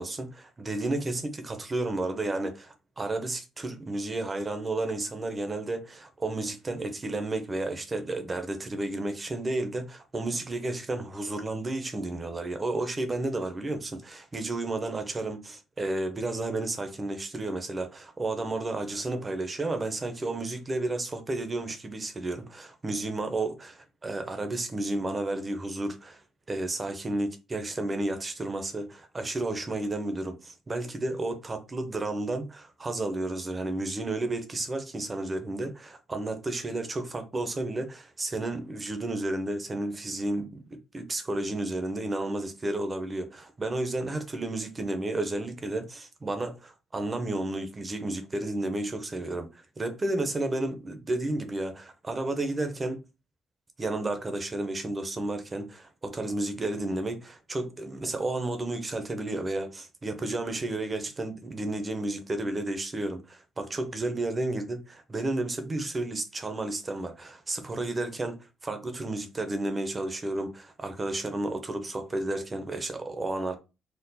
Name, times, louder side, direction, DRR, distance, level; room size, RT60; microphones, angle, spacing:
voice 1, 0.0-26.2 26.5-49.5 49.8-53.0 53.8-68.4 68.6-73.6, right 2 dB, 20° right, 0.8 m, -32 dB
4.3 x 2.4 x 4.1 m
cardioid pair, 135°, 0 cm